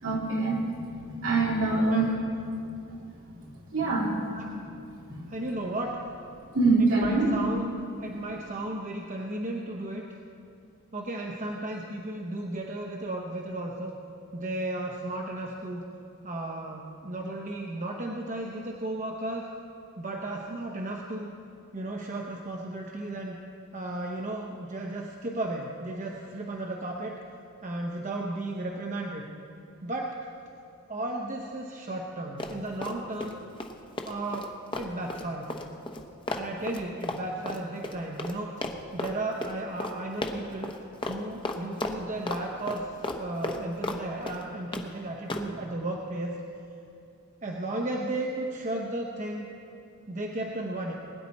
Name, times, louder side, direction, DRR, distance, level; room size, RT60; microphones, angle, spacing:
voice 1, 0.0-2.1 3.7-4.2 5.1-5.2 6.5-7.3, right 3 dB, 60° right, -3 dB, 3.0 m, -25 dB
voice 2, 5.3-6.1 6.8-10.1 10.9-13.9 14.3-15.8 16.2-19.5 20.0-21.3 21.7-23.4 23.7-27.2 27.6-29.2 29.8-30.2 30.9-33.4 34.0-35.5 36.3-38.7 38.9-40.7 41.1-42.9 43.2-46.3 47.4-49.5 50.1-50.9, right 2 dB, 35° right, 0 dB, 0.8 m, -34 dB
Run, 32.4-33.3 33.6-38.4 38.6-39.1 39.4-39.5 39.8-39.9 40.2-40.8 41.0-41.2 41.4-42.4 42.7-44.0 44.3-44.9 45.3-45.5, left 2 dB, 25° left, 0.8 m, -34 dB
21.0 x 10.0 x 4.2 m, 2.6 s
head